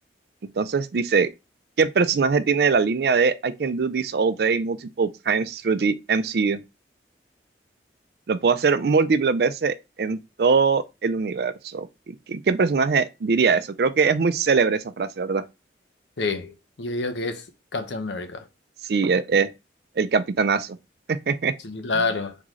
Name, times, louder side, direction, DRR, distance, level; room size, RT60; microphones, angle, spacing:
voice 1, 0.6-1.3 1.8-6.6 8.3-11.9 12.3-15.4 18.9-19.5 20.0-20.8 21.1-21.5, right 5 dB, 60° right, 0.4 m, -22 dB
voice 2, 16.2-17.4 17.7-18.4 21.6-22.4, left 3 dB, 85° left, 0.7 m, -28 dB
3.7 x 3.1 x 3.7 m
head